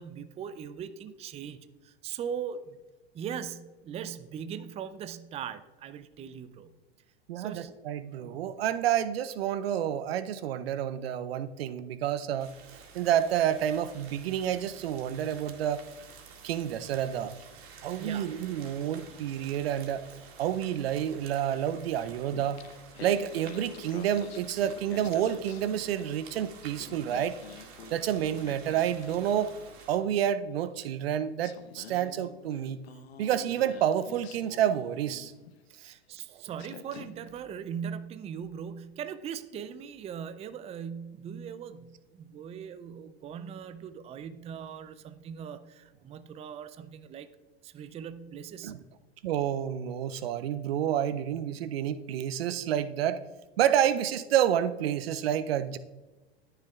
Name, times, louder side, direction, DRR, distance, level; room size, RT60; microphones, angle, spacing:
voice 1, 0.0-2.8 3.1-6.7 7.3-7.7 18.0-18.3 35.8-47.3 47.6-48.8, right 8 dB, 20° right, 13 dB, 0.5 m, -40 dB
voice 2, 7.3-12.5 12.9-15.8 16.4-17.3 17.8-20.1 20.4-22.6 23.0-27.4 27.9-29.5 29.9-32.8 33.2-35.3 35.8-35.9 48.6-48.8 49.2-53.2 53.6-55.8, right 10 dB, 70° right, 13 dB, 0.6 m, -29 dB
sound 1, 12.4-30.0, right 5 dB, 45° right, 2.1 m, -51 dB
Singing, 22.3-26.3 26.6-29.8 30.8-30.9 31.4-35.6 36.2-36.3 36.6-37.4, left 8 dB, 75° left, 0.8 m, -48 dB
19.5 x 6.7 x 2.4 m, 1.2 s
hypercardioid pair, 100°, 31 cm